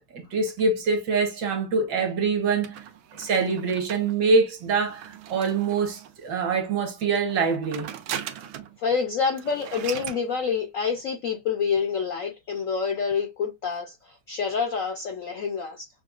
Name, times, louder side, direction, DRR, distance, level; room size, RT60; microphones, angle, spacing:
voice 1, 0.1-2.8 3.2-7.9, right 4 dB, 65° right, 1.8 m, -24 dB
sound 1, 2.6-6.3 7.3-8.8 9.1-9.2 9.4-10.2, right 10 dB, 80° right, 1.4 m, -39 dB
voice 2, 8.8-15.9, left 6 dB, 70° left, 0.8 m, -27 dB
6.7 x 2.3 x 2.4 m
omnidirectional pair, 2.2 m